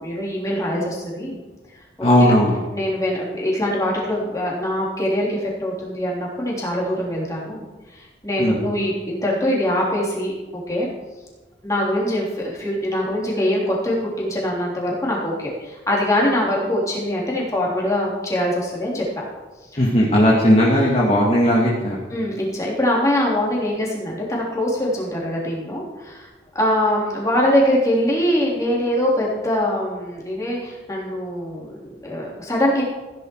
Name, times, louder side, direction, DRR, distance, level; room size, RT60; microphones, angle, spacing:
voice 1, 0.0-1.4 2.0-2.4 2.7-7.6 7.9-10.9 11.6-19.0 19.7-19.8 22.1-26.3 26.6-32.8, left 1 dB, 15° left, -4 dB, 3.3 m, -23 dB
voice 2, 2.0-2.6 8.4-8.6 19.8-22.0, equal, 35° left, -5 dB, 1.9 m, -16 dB
15.5 x 10.5 x 4.7 m, 1.2 s
head